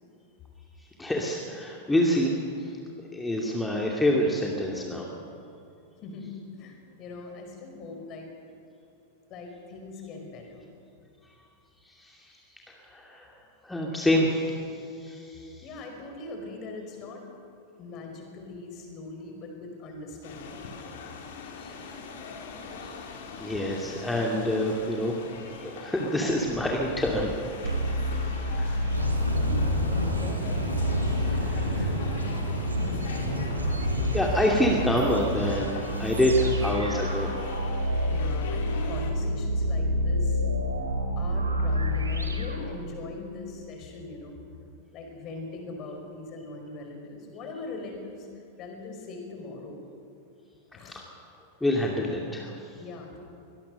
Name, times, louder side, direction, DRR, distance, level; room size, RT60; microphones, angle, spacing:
voice 1, 1.0-2.3 2.6-2.7 3.1-5.1 11.8-12.4 12.7-13.3 13.6-15.6 22.8-22.9 23.4-25.1 25.6-27.3 27.6-27.7 28.4-28.9 31.2-31.9 33.5-33.6 34.1-37.3 50.8-51.0 51.6-52.8, left 1 dB, 5° left, -1 dB, 2.5 m, -27 dB
voice 2, 6.5-8.3 9.3-10.8 15.6-17.3 17.8-20.6 29.3-29.8 30.2-30.7 31.5-32.3 32.8-33.0 38.1-40.4 41.2-44.4 44.9-49.8 50.7-51.0 52.7-53.2, left 3 dB, 35° left, 3 dB, 5.3 m, -41 dB
sound 1, 20.2-39.1, left 5 dB, 55° left, 3.2 m, -42 dB
sound 2, 27.6-43.3, left 1 dB, 75° right, 2.7 m, -29 dB
sound 3, 28.9-35.6, equal, 85° left, 4.2 m, -30 dB
23.5 x 19.5 x 6.7 m, 2.7 s
figure-of-eight pair, 90°, 0 cm